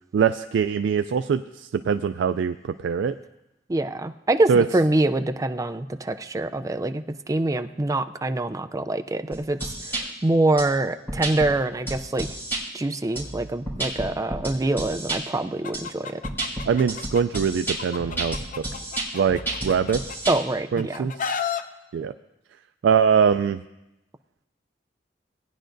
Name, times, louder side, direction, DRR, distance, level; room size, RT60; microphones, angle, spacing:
voice 1, 0.1-3.2 4.5-4.7 16.7-18.6 19.1-20.2 20.7-21.1 21.9-22.1 22.8-23.6, right 6 dB, 85° right, 10 dB, 0.3 m, -23 dB
voice 2, 3.7-12.3 12.7-16.2 20.3-21.1, right 2 dB, 20° right, 8 dB, 0.4 m, -25 dB
sound 1, 9.3-10.0 10.6-10.7 11.1-11.5 11.9-12.6 13.2-15.2 15.7-15.8 16.2-20.4, right 2 dB, 15° left, 3.6 m, -31 dB
Chicken rooster, 15.6-17.4 17.8-20.4 20.8-21.6, left 7 dB, 45° left, 0.6 m, -32 dB
19.0 x 10.0 x 2.6 m, 0.93 s
head